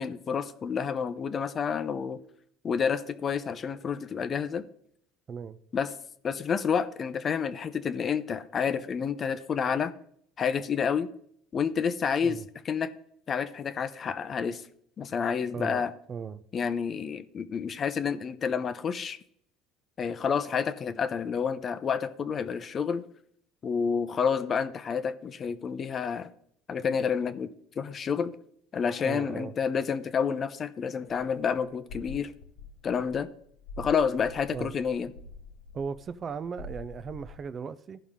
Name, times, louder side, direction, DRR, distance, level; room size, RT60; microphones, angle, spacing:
voice 1, 0.0-2.2 2.6-4.7 5.7-5.9 6.2-9.9 10.4-11.1 11.5-12.4 12.6-12.9 13.3-14.6 15.0-15.9 16.5-19.2 20.0-23.0 23.6-26.3 26.7-27.5 27.8-28.3 28.7-32.3 32.8-33.3 33.8-35.1, left 6 dB, 30° left, 0.6 m, -29 dB
voice 2, 5.3-5.6 12.2-12.5 15.5-16.4 29.0-29.5 34.5-34.7 35.7-38.0, right 6 dB, 30° right, 0.4 m, -37 dB
sound 1, 31.1-37.4, left 2 dB, 85° left, 1.8 m, -46 dB
15.0 x 5.6 x 3.6 m
cardioid pair, 135°, 0 cm